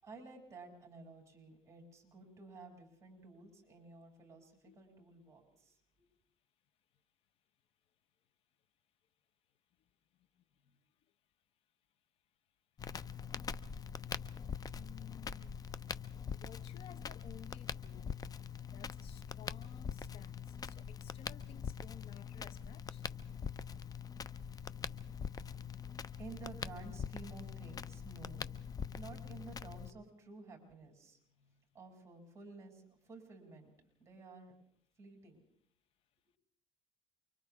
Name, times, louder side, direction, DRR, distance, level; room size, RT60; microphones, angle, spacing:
voice 1, 0.0-6.1 26.1-28.5 28.8-31.2 31.7-33.7 34.0-34.6 35.0-35.4, right 3 dB, 25° right, 7.2 m, -53 dB
Crackle, 12.8-29.9, left 7 dB, 35° left, 0.8 m, -43 dB
voice 2, 14.7-15.6 16.3-18.2 18.7-23.0 31.3-31.6, left 10 dB, 60° left, 1.0 m, -57 dB
29.0 x 25.0 x 3.6 m
supercardioid pair, 95°, 11 cm